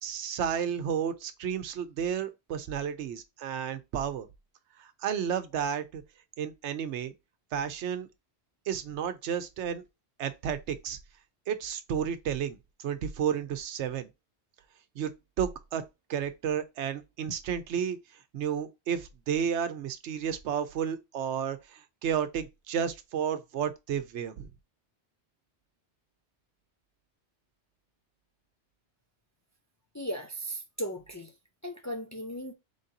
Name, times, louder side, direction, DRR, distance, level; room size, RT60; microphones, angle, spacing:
voice 1, 0.0-4.3 4.8-6.0 6.4-7.1 7.5-8.1 8.7-9.8 10.2-11.0 11.5-14.1 15.0-15.8 16.1-18.0 18.3-24.5, right 8 dB, 80° right, 1.0 m, -32 dB
voice 2, 29.9-31.3 31.6-32.5, equal, 30° left, 0.3 m, -36 dB
3.8 x 3.5 x 2.7 m
omnidirectional pair, 1.1 m